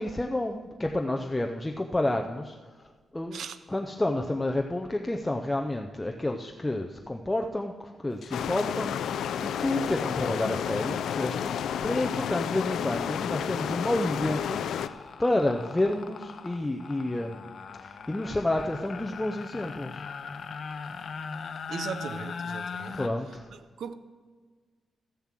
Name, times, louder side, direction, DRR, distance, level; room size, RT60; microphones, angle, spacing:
voice 1, 0.0-2.6 3.1-3.4 3.7-17.5 17.8-20.0 22.9-23.5, left 1 dB, 10° left, 0.5 m, -30 dB
sound 1, 8.2-8.4 8.7-23.1, left 5 dB, 50° left, 0.7 m, -40 dB
sound 2, 8.3-14.9, left 9 dB, 85° left, 0.4 m, -31 dB
voice 2, 21.7-22.9 23.8-23.9, right 6 dB, 70° right, 0.7 m, -37 dB
13.5 x 7.2 x 7.4 m
wide cardioid pair, 140°, 0 cm